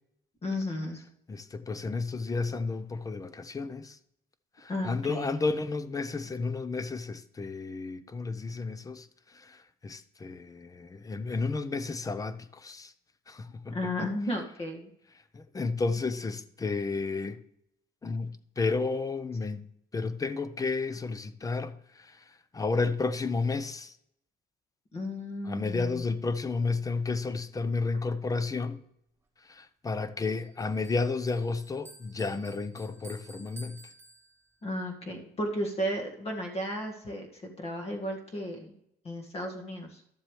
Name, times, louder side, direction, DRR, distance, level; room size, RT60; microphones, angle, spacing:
voice 1, 0.4-1.0 4.7-5.4 13.7-14.9 24.9-26.1 34.6-38.7 39.0-40.0, left 1 dB, 35° left, 1.9 m, -34 dB
voice 2, 1.3-4.0 4.6-9.1 9.3-12.9 13.3-13.8 15.3-17.4 18.0-19.7 19.9-22.2 22.5-23.9 25.5-28.8 29.5-33.8, left 3 dB, 20° left, 0.6 m, -32 dB
Bell, 30.2-34.7, right 3 dB, 15° right, 1.5 m, -53 dB
12.5 x 7.2 x 3.3 m
cardioid pair, 110°, 17 cm